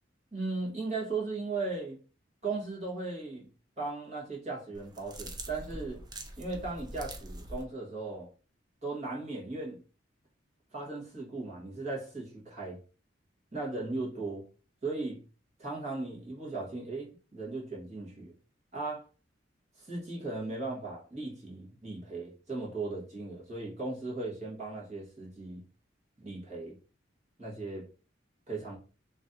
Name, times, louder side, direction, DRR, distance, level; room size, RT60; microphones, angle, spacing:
voice 1, 0.3-2.0 2.4-3.5 3.8-6.0 6.4-8.3 8.8-9.8 10.7-12.8 13.5-14.4 14.8-15.2 15.6-18.3 18.7-19.0 19.8-25.6 26.2-26.8 27.4-27.8 28.5-28.8, right 3 dB, 35° right, 1.6 m, -37 dB
sound 1, 4.7-7.6, right 1 dB, 20° right, 0.4 m, -43 dB
3.1 x 2.7 x 3.7 m
head